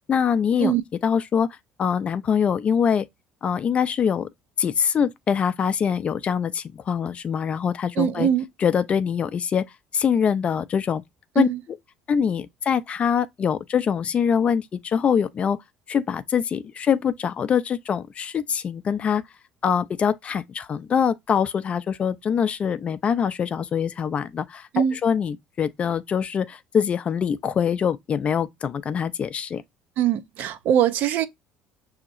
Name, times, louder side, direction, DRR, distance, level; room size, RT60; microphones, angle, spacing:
voice 1, 0.1-0.7 1.0-1.5 1.8-3.1 3.4-4.3 4.6-8.3 8.6-9.6 9.9-11.0 11.3-11.5 12.1-15.6 15.9-19.2 19.6-29.6, left 7 dB, 35° left, 0.4 m, -24 dB
voice 2, 8.0-8.4 11.4-11.6 24.7-25.0 30.0-31.3, right 9 dB, 60° right, 0.6 m, -22 dB
5.9 x 2.8 x 2.5 m
cardioid pair, 105°, 3 cm